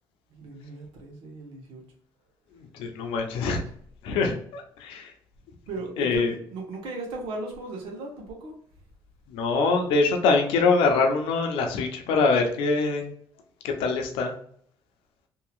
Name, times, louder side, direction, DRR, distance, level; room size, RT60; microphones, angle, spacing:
voice 1, 0.3-1.8 5.7-8.6, right 2 dB, 75° right, 0 dB, 1.1 m, -37 dB
voice 2, 2.5-3.6 4.0-5.1 6.0-6.3 9.3-13.1 13.6-14.3, left 4 dB, 80° left, 4 dB, 0.7 m, -24 dB
2.8 x 2.8 x 2.4 m, 0.63 s
supercardioid pair, 80°, 9 cm